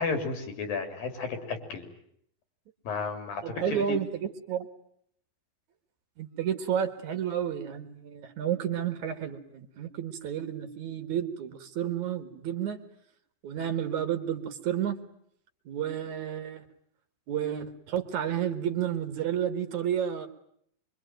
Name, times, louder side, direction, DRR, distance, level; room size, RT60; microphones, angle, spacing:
voice 1, 0.0-1.9 2.9-4.0, left 4 dB, 75° left, 7 dB, 5.2 m, -33 dB
voice 2, 3.4-4.7 6.2-12.8 13.4-15.0 15.7-16.7 17.3-20.3, right 9 dB, 60° right, 9 dB, 2.7 m, -31 dB
25.0 x 24.5 x 9.1 m, 0.69 s
omnidirectional pair, 4.1 m